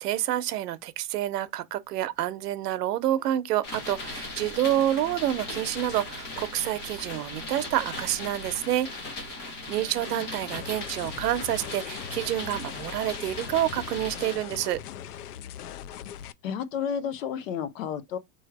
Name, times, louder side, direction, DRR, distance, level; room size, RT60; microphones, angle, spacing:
voice 1, 0.0-8.9 9.3-14.8, right 13 dB, 90° right, 0.9 m, -28 dB
sound 1, 3.6-14.3, left 2 dB, 20° left, 1.2 m, -38 dB
voice 2, 9.8-10.5 16.4-18.2, left 8 dB, 60° left, 0.9 m, -32 dB
sound 2, 10.5-16.3, left 10 dB, 80° left, 0.7 m, -40 dB
3.5 x 3.2 x 4.6 m
supercardioid pair, 170°, 46 cm